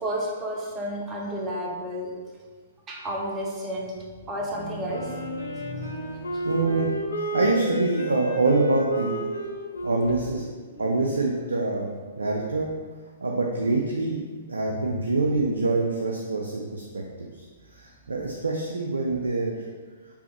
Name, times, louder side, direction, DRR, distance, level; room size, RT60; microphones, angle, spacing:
voice 1, 0.0-2.1 2.9-3.9 4.2-6.0 6.3-6.4 15.0-15.1, equal, 20° right, -2 dB, 0.7 m, -32 dB
sound 1, 4.4-6.6, right 4 dB, 10° left, 1.2 m, -40 dB
Wind instrument woodwind instrument, 4.9-11.7, equal, 85° left, 0.5 m, -32 dB
voice 2, 6.4-6.9 7.2-9.3 9.8-10.5 10.8-11.9 12.2-12.7 13.2-17.3 17.7-19.6, right 3 dB, 80° right, 0 dB, 0.3 m, -25 dB
3.4 x 2.5 x 2.9 m, 1.5 s
figure-of-eight pair, 115°, 0 cm